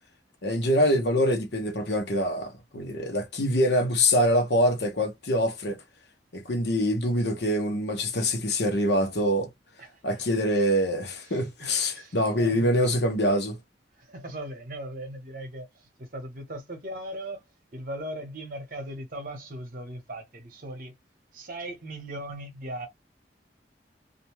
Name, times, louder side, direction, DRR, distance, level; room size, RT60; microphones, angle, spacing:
voice 1, 0.4-5.8 6.3-9.5 10.0-13.6, equal, 70° left, 0.9 m, -25 dB
voice 2, 11.9-12.7 14.1-17.4 17.7-20.9 21.3-22.9, right 1 dB, 50° right, 1.0 m, -38 dB
2.6 x 2.2 x 3.0 m
head